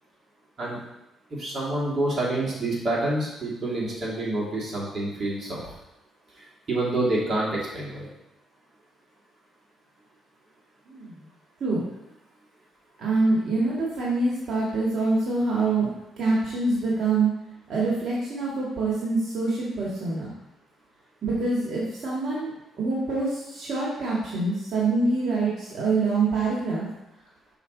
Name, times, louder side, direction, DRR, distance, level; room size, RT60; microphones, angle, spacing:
voice 1, 1.4-5.6 6.7-8.1, right 2 dB, 40° right, -6 dB, 2.7 m, -27 dB
voice 2, 13.0-15.9 16.2-17.3 17.7-20.3 21.2-22.5 22.8-26.9, right 3 dB, 65° right, -5 dB, 1.8 m, -25 dB
6.0 x 5.7 x 4.0 m, 0.88 s
cardioid pair, 90°, 0 cm